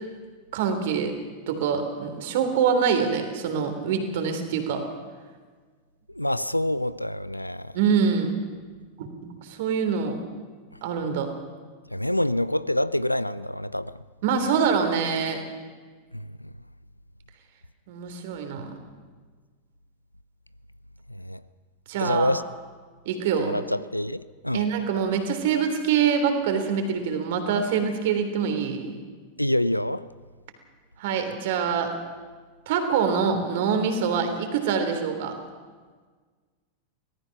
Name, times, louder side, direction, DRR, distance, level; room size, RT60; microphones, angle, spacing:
voice 1, 0.5-1.1 1.5-4.9 7.7-8.3 9.0-9.1 9.4-10.2 10.8-11.3 14.2-15.4 17.9-18.7 21.9-22.3 23.0-23.6 24.5-28.9 31.0-31.9 32.7-35.4, right 6 dB, 55° right, 3.3 m, -25 dB
voice 2, 6.1-7.8 11.9-14.0 16.1-16.5 21.1-21.4 22.0-22.4 23.4-24.7 29.4-30.1, left 1 dB, 90° left, 0.5 m, -26 dB
25.0 x 18.0 x 5.9 m
figure-of-eight pair, 90°, 0 cm